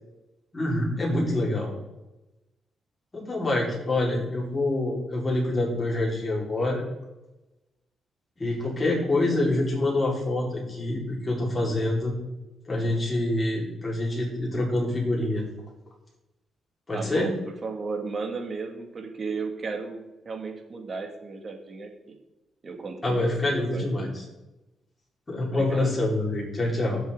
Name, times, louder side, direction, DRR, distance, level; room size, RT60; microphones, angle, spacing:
voice 1, 0.5-1.7 3.1-6.8 8.4-12.1 12.7-15.5 16.9-17.3 23.0-24.2 25.3-27.0, left 2 dB, 25° left, -3 dB, 4.3 m, -26 dB
voice 2, 16.9-17.4 17.6-21.9 22.6-24.1 25.5-25.9, right 4 dB, 40° right, 3 dB, 2.1 m, -34 dB
15.5 x 7.1 x 3.8 m, 1.0 s
cardioid pair, 95°, 0 cm